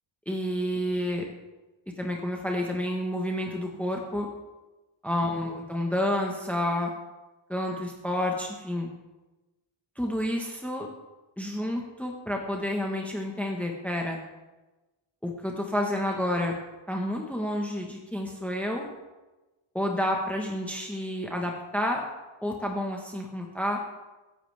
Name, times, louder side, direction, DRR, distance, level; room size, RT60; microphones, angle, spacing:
voice 1, 0.3-1.3 2.0-4.3 5.0-6.9 7.5-8.9 10.0-10.9 11.4-14.2 15.2-16.5 16.9-18.9 19.7-22.0 22.4-23.8, left 1 dB, 5° left, 1 dB, 1.3 m, -29 dB
21.5 x 11.0 x 3.5 m, 1.1 s
wide cardioid pair, 140°, 50 cm